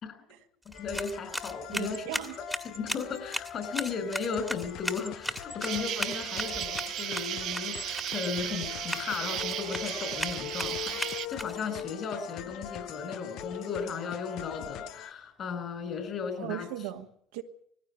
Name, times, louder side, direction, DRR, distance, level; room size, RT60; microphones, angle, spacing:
sound 1, 0.6-11.8, equal, ahead, 1.9 m, -38 dB
sound 2, 0.7-15.1, left 11 dB, 70° left, 1.0 m, -42 dB
voice 1, 0.8-2.1 2.6-16.7, left 5 dB, 50° left, 6.0 m, -36 dB
voice 2, 1.7-2.4 16.4-17.4, right 12 dB, 85° right, 1.9 m, -38 dB
Insect, 5.6-11.3, right 12 dB, 65° right, 0.9 m, -35 dB
19.5 x 15.5 x 10.0 m
supercardioid pair, 85°, 0 cm